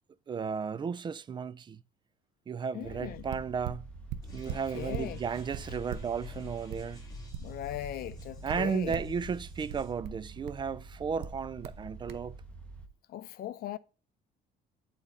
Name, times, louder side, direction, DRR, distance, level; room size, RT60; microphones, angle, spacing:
voice 1, 0.3-1.8 2.5-3.9 4.3-7.0 8.4-12.4, right 6 dB, 25° right, 0.4 m, -34 dB
voice 2, 2.7-3.3 4.5-5.2 7.4-9.0 13.1-13.8, left 12 dB, 60° left, 0.6 m, -39 dB
sound 1, 2.8-12.9, right 3 dB, 5° left, 1.3 m, -48 dB
sound 2, 3.3-5.1 5.5-7.8 8.1-9.2 9.7-10.7 11.2-11.8 12.1-12.3, right 9 dB, 80° right, 0.8 m, -41 dB
sound 3, 4.2-9.9, left 3 dB, 25° left, 3.1 m, -48 dB
8.8 x 4.2 x 3.7 m
cardioid pair, 110°, 17 cm